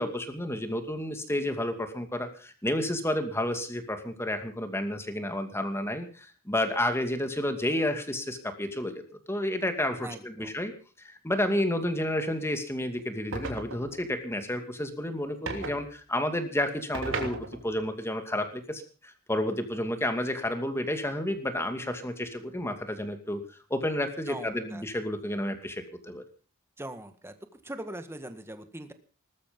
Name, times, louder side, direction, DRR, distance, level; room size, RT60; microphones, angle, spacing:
voice 1, 0.0-9.0 9.3-10.7 11.0-23.4 23.7-26.2, left 1 dB, 10° left, 7 dB, 2.4 m, -31 dB
voice 2, 10.0-10.5 24.3-24.9 26.8-27.4 27.6-28.9, right 1 dB, 10° right, 8 dB, 1.7 m, -41 dB
sound 1, 13.3-14.0 15.5-15.8 16.9-17.8, right 2 dB, 60° right, 3.1 m, -35 dB
20.0 x 13.5 x 5.4 m, 0.39 s
head